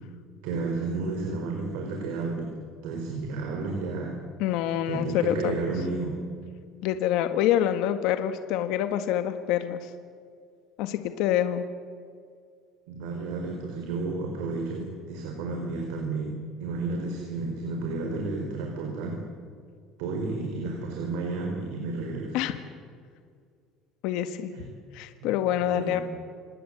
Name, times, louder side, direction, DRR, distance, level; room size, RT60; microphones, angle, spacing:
voice 1, 0.4-2.5 2.8-4.2 4.9-6.2 12.9-19.2 20.0-22.4 24.5-24.7 25.2-25.3 25.6-26.0, right 3 dB, 85° right, 2 dB, 5.1 m, -32 dB
voice 2, 4.4-5.5 6.8-9.9 10.8-11.6 22.3-22.5 24.0-24.5 24.9-26.0, left 11 dB, 65° left, 9 dB, 1.6 m, -26 dB
26.5 x 19.5 x 8.0 m, 2.1 s
cardioid pair, 155°, 0 cm